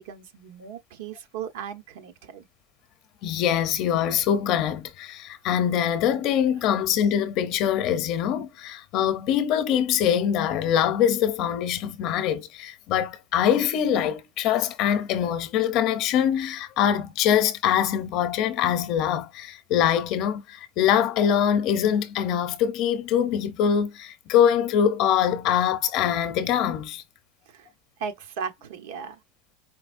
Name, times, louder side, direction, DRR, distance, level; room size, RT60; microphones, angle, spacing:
voice 1, 0.0-2.5 27.5-27.7 28.0-29.2, right 7 dB, 80° right, 1.0 m, -37 dB
voice 2, 3.2-27.0, left 9 dB, 45° left, 0.7 m, -23 dB
5.0 x 3.1 x 2.5 m
supercardioid pair, 165°, 0 cm